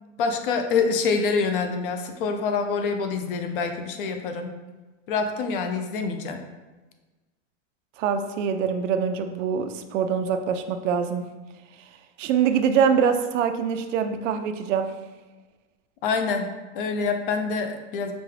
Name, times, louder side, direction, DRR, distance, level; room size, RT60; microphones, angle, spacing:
voice 1, 0.2-4.5 5.1-6.4 16.0-18.1, left 5 dB, 50° left, 6 dB, 0.4 m, -26 dB
voice 2, 8.0-11.2 12.2-14.9, right 7 dB, 90° right, 8 dB, 0.5 m, -24 dB
5.1 x 2.2 x 3.2 m, 1.2 s
supercardioid pair, 170°, 36 cm